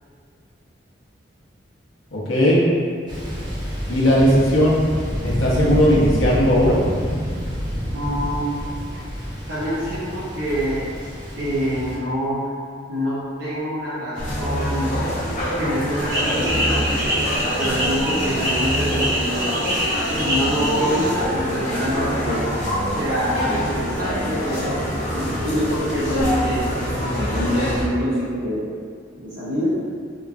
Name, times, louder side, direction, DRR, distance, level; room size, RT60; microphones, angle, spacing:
voice 1, 2.1-2.6 3.9-4.8 5.2-6.8, equal, 80° left, -7 dB, 0.7 m, -17 dB
Thunder, 3.1-12.0, equal, 20° right, 0.5 m, -28 dB
voice 2, 7.9-8.5 9.5-10.9 11.4-12.4 12.9-15.0 15.6-17.0 17.6-19.5 20.1-22.4 22.9-24.8 25.1-26.6 27.0-28.6 29.1-29.7, equal, 70° right, -12 dB, 0.6 m, -25 dB
sound 1, 14.2-27.8, equal, 40° left, 0.5 m, -25 dB
sound 2, 16.1-21.1, equal, 85° right, 1.2 m, -25 dB
2.9 x 2.3 x 2.4 m, 2.1 s
head